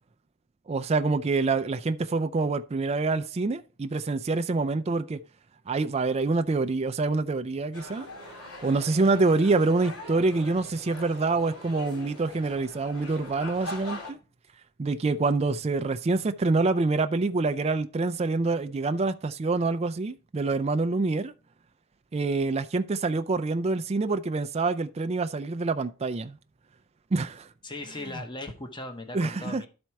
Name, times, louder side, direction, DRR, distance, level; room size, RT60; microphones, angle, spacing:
voice 1, 0.7-5.2 5.7-8.1 8.6-14.2 14.8-21.3 22.1-26.4 27.1-27.5 29.1-29.6, right 3 dB, 30° right, 0.4 m, -26 dB
sound 1, 7.7-14.1, left 1 dB, 80° left, 2.5 m, -42 dB
voice 2, 27.6-29.7, left 2 dB, 20° left, 0.9 m, -38 dB
11.5 x 4.3 x 4.6 m
head